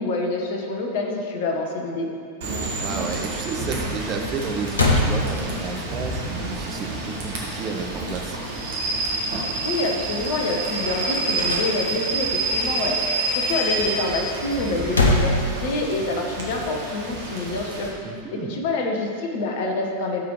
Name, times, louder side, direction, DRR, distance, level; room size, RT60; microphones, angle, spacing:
voice 1, 0.0-2.1 9.5-17.9 18.3-20.2, left 2 dB, 50° left, 1 dB, 1.4 m, -27 dB
Rain / Train, 2.4-17.9, right 2 dB, 60° right, 1.9 m, -28 dB
voice 2, 2.8-8.4 18.0-18.6, right 4 dB, 30° right, 3 dB, 1.0 m, -32 dB
sound 1, 4.3-4.4 4.7-5.9 11.3-12.2 14.6-16.2, left 1 dB, 75° left, 1.0 m, -23 dB
13.5 x 7.2 x 3.2 m, 2.3 s
figure-of-eight pair, 90°, 0 cm